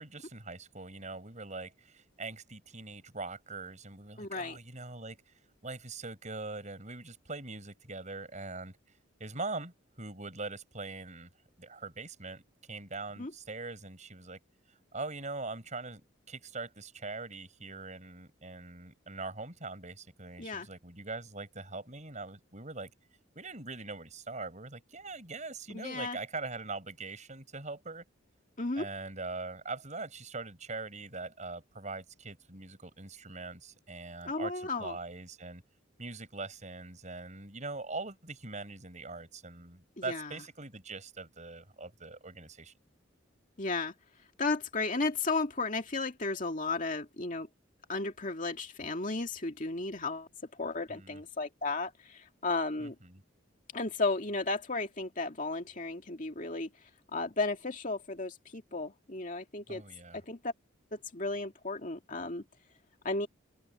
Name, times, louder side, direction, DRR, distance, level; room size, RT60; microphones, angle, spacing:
voice 1, 0.0-5.3 5.6-8.8 9.2-11.3 11.6-12.4 12.7-14.4 14.7-16.0 16.3-22.9 23.4-28.0 28.8-35.6 36.0-42.7 50.9-51.2 52.8-53.2 59.7-60.2, right 3 dB, 35° right, 6.9 m, -42 dB
voice 2, 4.2-4.6 13.2-13.3 20.4-20.7 25.7-26.2 28.6-28.9 34.2-35.0 40.1-40.3 43.6-43.9 44.4-47.5 47.9-52.9 53.7-56.7 57.1-59.8 60.1-60.5 60.9-62.4 63.0-63.3, left 3 dB, 40° left, 2.3 m, -34 dB
open air
head